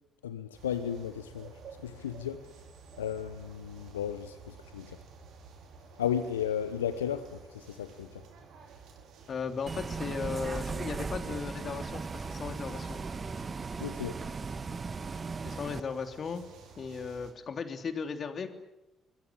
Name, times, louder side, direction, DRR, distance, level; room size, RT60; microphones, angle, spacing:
voice 1, 0.2-1.5 1.8-2.4 3.0-5.0 6.0-8.2 13.8-14.2, left 9 dB, 85° left, 11 dB, 1.0 m, -34 dB
sound 1, 0.5-17.3, right 5 dB, 65° right, 5.1 m, -53 dB
voice 2, 9.3-13.0 15.4-16.4 16.8-18.5, left 5 dB, 45° left, 7 dB, 3.2 m, -36 dB
Bus, 9.7-15.8, right 4 dB, 35° right, 1.6 m, -37 dB
25.5 x 22.5 x 9.9 m, 0.96 s
figure-of-eight pair, 45°, 0 cm